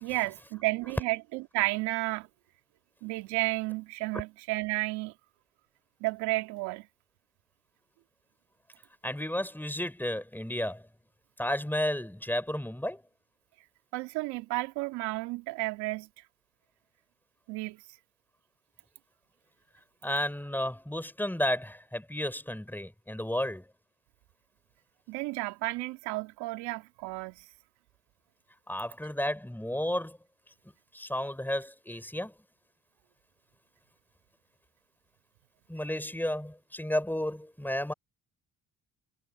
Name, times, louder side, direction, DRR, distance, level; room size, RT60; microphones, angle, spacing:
voice 1, 0.0-2.3 3.0-5.1 6.0-6.9 13.9-16.1 17.5-17.8 25.1-27.4, right 21 dB, 80° right, 2.9 m, -32 dB
voice 2, 9.0-10.9 11.4-13.0 20.0-23.7 28.7-30.2 30.9-32.3 35.7-37.9, left 1 dB, 5° left, 7.3 m, -32 dB
hypercardioid pair, 60°, 39 cm